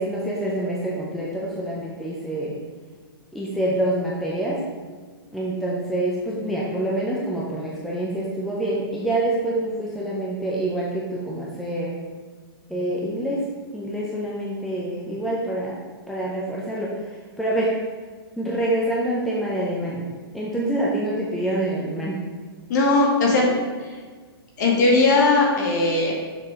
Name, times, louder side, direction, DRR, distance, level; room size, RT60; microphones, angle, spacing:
voice 1, 0.0-2.6 3.3-4.6 5.3-12.0 12.7-13.4 13.7-15.8 16.1-17.1 17.4-17.7 18.4-20.1 20.3-22.2, right 1 dB, ahead, -5 dB, 0.4 m, -26 dB
voice 2, 22.7-23.5 24.6-26.3, left 3 dB, 45° left, -2 dB, 1.8 m, -18 dB
6.7 x 6.0 x 3.6 m, 1.5 s
hypercardioid pair, 170°, 13 cm